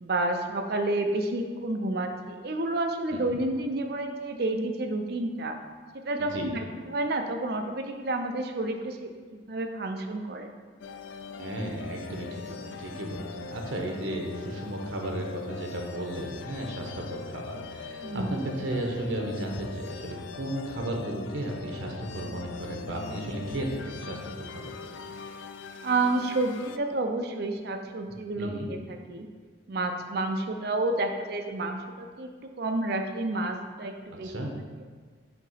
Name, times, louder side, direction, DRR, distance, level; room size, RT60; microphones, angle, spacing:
voice 1, 0.0-5.5 6.0-10.5 18.0-18.4 25.8-28.8 29.1-29.3 29.7-32.3 32.6-34.3, right 2 dB, 55° right, 5 dB, 0.5 m, -30 dB
voice 2, 6.2-6.5 11.4-24.9 28.4-28.7 34.1-34.5, right 1 dB, 85° right, 1 dB, 0.9 m, -34 dB
sound 1, 10.8-26.8, left 5 dB, 75° left, 0.3 m, -41 dB
5.9 x 2.9 x 5.5 m, 1.5 s
head